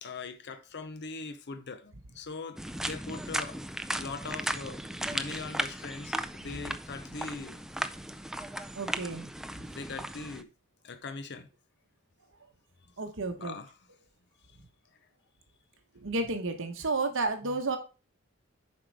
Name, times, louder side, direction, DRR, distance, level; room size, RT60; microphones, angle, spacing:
voice 1, 0.0-3.6 4.0-4.8 5.1-7.6 9.7-10.5 10.8-11.5 13.4-13.7 17.4-17.6, left 4 dB, 55° left, 0.7 m, -41 dB
sound 1, 2.6-10.4, right 1 dB, ahead, 0.4 m, -36 dB
voice 2, 8.7-9.3 13.0-13.5 15.9-17.8, right 3 dB, 60° right, 1.1 m, -31 dB
7.7 x 5.3 x 4.7 m
head